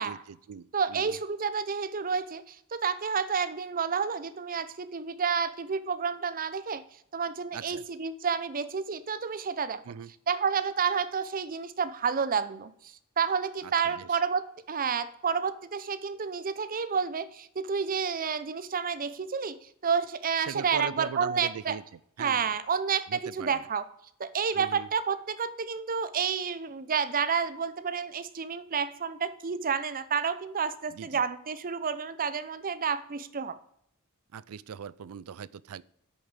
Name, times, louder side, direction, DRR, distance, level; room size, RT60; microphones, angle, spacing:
voice 1, 0.0-1.2 7.5-7.8 9.9-10.1 13.6-14.2 20.5-21.8 22.2-22.5 23.1-23.6 24.5-24.9 30.9-31.2 34.3-35.8, right 7 dB, 85° right, 21 dB, 0.4 m, -40 dB
voice 2, 0.7-6.8 7.1-9.8 10.3-21.7 22.2-23.9 24.2-33.6, right 6 dB, 40° right, 14 dB, 0.7 m, -30 dB
8.5 x 6.8 x 7.2 m, 0.73 s
head